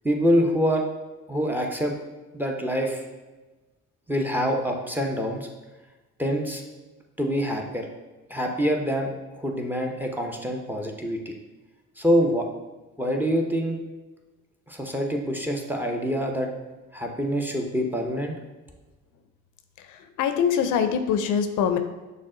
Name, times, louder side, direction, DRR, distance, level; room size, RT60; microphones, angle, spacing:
voice 1, 0.0-0.8 1.3-1.9 2.3-3.0 4.1-5.5 6.2-6.6 7.2-7.9 8.3-11.4 12.0-12.5 13.0-13.8 14.7-16.5 16.9-18.3, equal, 5° right, 2 dB, 0.6 m, -25 dB
voice 2, 19.8-21.8, left 7 dB, 85° left, 9 dB, 0.5 m, -24 dB
6.2 x 2.1 x 3.7 m, 1.2 s
cardioid pair, 90°, 30 cm